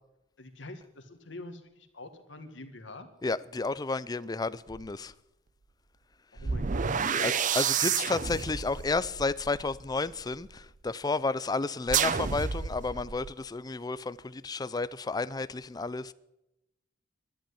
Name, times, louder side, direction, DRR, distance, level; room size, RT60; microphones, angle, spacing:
voice 1, 0.4-3.1 6.3-7.3 7.9-8.3, left 2 dB, 75° left, 1.8 m, -46 dB
voice 2, 3.2-5.1 7.2-16.1, left 3 dB, 20° left, 0.4 m, -32 dB
sound 1, 4.7-4.9 6.4-10.5 11.9-13.3, right 7 dB, 45° right, 0.6 m, -30 dB
12.0 x 10.5 x 9.9 m
head